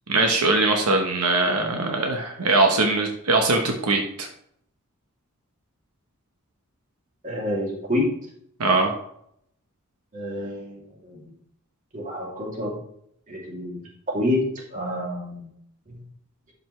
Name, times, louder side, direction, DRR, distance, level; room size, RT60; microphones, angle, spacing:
voice 1, 0.1-4.3 8.6-8.9, right 2 dB, 85° right, 3 dB, 1.1 m, -21 dB
voice 2, 7.2-8.1 10.1-11.2 11.9-12.8 13.3-15.5 15.9-16.0, left 1 dB, 35° right, -3 dB, 2.7 m, -28 dB
12.0 x 5.3 x 3.2 m, 0.69 s
head